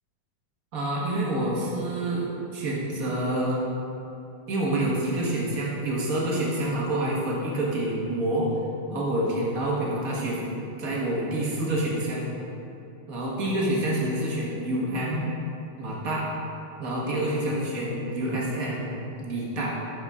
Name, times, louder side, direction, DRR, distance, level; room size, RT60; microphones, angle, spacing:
voice 1, 0.7-3.6 4.5-8.5 8.9-10.4 10.8-12.3 13.1-15.2 15.8-16.2 16.8-18.9 19.2-19.7, right 1 dB, 55° right, -5 dB, 0.9 m, -27 dB
12.5 x 5.4 x 3.6 m, 2.8 s
omnidirectional pair, 3.6 m